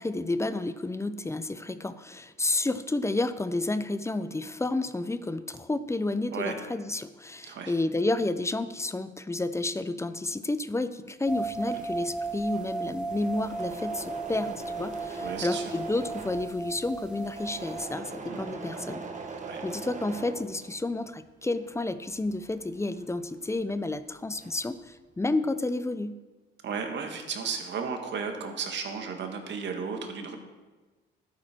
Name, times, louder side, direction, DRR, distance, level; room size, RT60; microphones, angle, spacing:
voice 1, 0.0-19.0 19.6-26.2, left 2 dB, 15° left, 13 dB, 0.6 m, -31 dB
sound 1, 11.3-17.8, right 3 dB, 5° right, 1.3 m, -36 dB
Engine / Mechanisms, 11.5-21.1 21.4-23.8 24.0-24.7, right 3 dB, 40° right, 1.6 m, -42 dB
voice 2, 15.2-15.6 18.3-18.4 19.4-19.6 26.6-30.4, right 5 dB, 65° right, 4 dB, 1.8 m, -34 dB
12.0 x 9.5 x 4.5 m, 1.2 s
cardioid pair, 90°, 20 cm